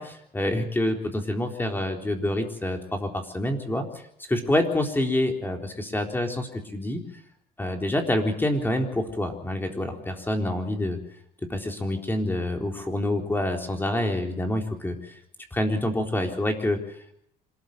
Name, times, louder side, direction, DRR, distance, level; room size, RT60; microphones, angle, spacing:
voice 1, 0.0-3.8 4.3-6.5 6.7-7.0 7.6-11.0 11.5-15.0 15.5-16.8, left 1 dB, 10° left, 3 dB, 3.9 m, -27 dB
26.5 x 14.5 x 7.8 m, 0.74 s
cardioid pair, 110°, 17 cm